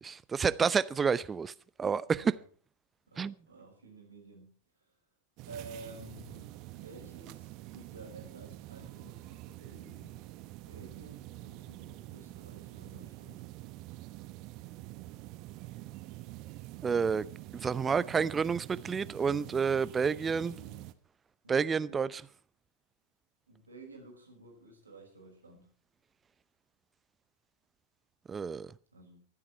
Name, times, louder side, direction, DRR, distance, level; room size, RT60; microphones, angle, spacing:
voice 1, 0.0-1.5 1.8-2.2 3.2-3.3 16.8-17.3 17.5-20.5 21.5-22.1 28.3-28.7, right 6 dB, 15° right, 0.7 m, -29 dB
voice 2, 2.1-2.4 3.1-4.6 5.4-10.2 10.6-13.5 20.2-20.9 21.4-22.2 23.5-25.8 28.9-29.3, right 3 dB, 75° right, 5.8 m, -51 dB
sound 1, 5.4-20.9, right 17 dB, 40° right, 1.2 m, -47 dB
24.0 x 8.7 x 4.4 m
figure-of-eight pair, 90°, 0 cm